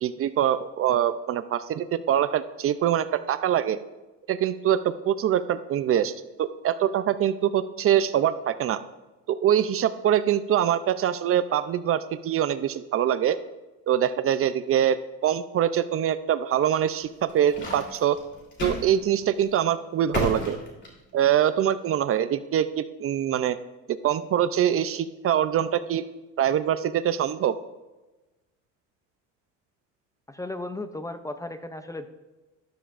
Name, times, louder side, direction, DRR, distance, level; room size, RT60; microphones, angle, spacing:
voice 1, 0.0-3.8 4.3-6.1 6.4-8.8 9.3-13.4 13.9-18.2 18.6-20.6 21.1-23.6 24.0-26.0 26.4-27.6, right 10 dB, 45° right, 13 dB, 0.5 m, -24 dB
sound 1, 17.0-18.9 19.2-19.4 20.1-21.3, left 1 dB, 35° left, 3.3 m, -32 dB
voice 2, 30.3-32.1, left 2 dB, 10° left, 9 dB, 0.5 m, -35 dB
13.0 x 12.5 x 2.5 m, 1.1 s
cardioid pair, 130°, 33 cm